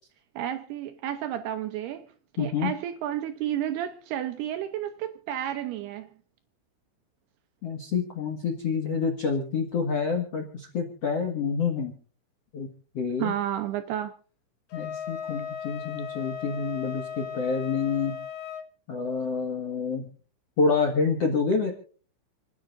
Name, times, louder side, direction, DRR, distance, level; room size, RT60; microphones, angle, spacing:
voice 1, 0.4-6.1 13.2-14.2, right 11 dB, 85° right, 2.3 m, -31 dB
voice 2, 2.4-2.7 7.6-11.9 12.5-12.7 12.9-13.3 14.7-18.2 18.9-20.1 20.6-21.7, left 5 dB, 85° left, 1.3 m, -27 dB
Wind instrument woodwind instrument, 14.7-18.7, left 8 dB, 65° left, 2.8 m, -37 dB
29.5 x 10.0 x 2.5 m
omnidirectional pair, 5.6 m